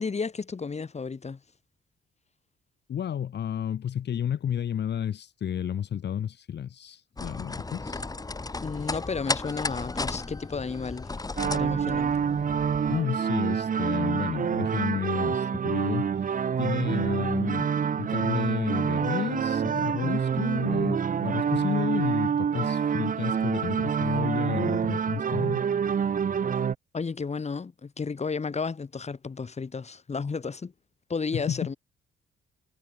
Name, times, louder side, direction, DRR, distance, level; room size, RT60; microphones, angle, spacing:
voice 1, 0.0-1.4 8.6-11.1 11.5-12.2 26.9-30.7 31.1-31.8, left 5 dB, 35° left, 7.7 m, -32 dB
voice 2, 2.9-8.0 12.9-17.7 18.0-25.6 31.3-31.7, left 9 dB, 60° left, 3.2 m, -31 dB
sound 1, 7.2-13.0, left 3 dB, 20° left, 1.6 m, -34 dB
sound 2, 11.4-26.8, right 7 dB, 45° right, 1.3 m, -27 dB
cardioid pair, 90°, 20 cm